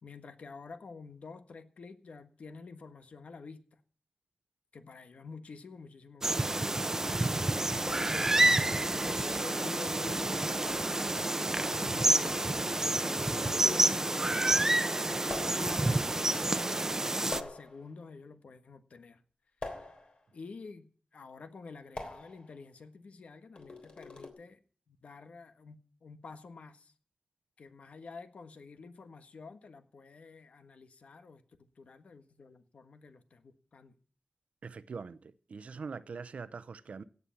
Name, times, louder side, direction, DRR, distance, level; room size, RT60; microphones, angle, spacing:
voice 1, 0.0-3.6 4.7-6.7 7.7-19.2 19.7-19.9 20.3-24.6 24.9-26.9 27.6-33.9, left 4 dB, 85° left, 1.4 m, -49 dB
sound 1, 6.2-17.4, right 2 dB, 20° right, 0.8 m, -29 dB
sound 2, 7.9-8.3 9.3-9.6 10.7-10.9 12.2-12.5 13.6-14.2 15.3-16.0 17.3-17.9 19.6-20.3 21.9-22.6 23.6-24.3, left 3 dB, 55° left, 3.5 m, -43 dB
voice 2, 34.6-37.0, right 5 dB, 80° right, 0.8 m, -43 dB
16.5 x 8.1 x 7.2 m
wide cardioid pair, 100°, 2 cm